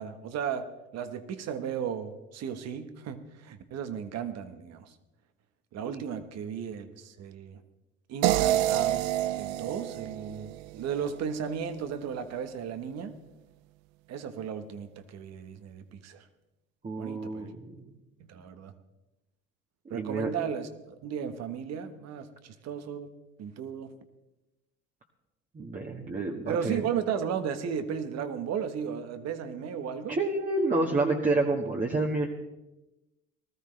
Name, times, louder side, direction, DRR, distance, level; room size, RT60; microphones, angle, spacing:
voice 1, 0.0-4.9 5.7-7.6 8.1-9.0 9.3-13.2 14.1-16.3 17.0-17.5 18.2-18.7 19.9-20.7 21.0-23.1 23.4-23.9 26.4-30.2, right 7 dB, 60° right, 10 dB, 1.4 m, -35 dB
sound 1, 8.2-11.3, right 14 dB, 80° right, 0.5 m, -28 dB
voice 2, 16.8-17.8 19.9-20.3 25.5-26.8 30.1-32.3, right 2 dB, 25° right, -1 dB, 1.6 m, -29 dB
19.0 x 13.5 x 3.3 m, 1.0 s
supercardioid pair, 90°, 30 cm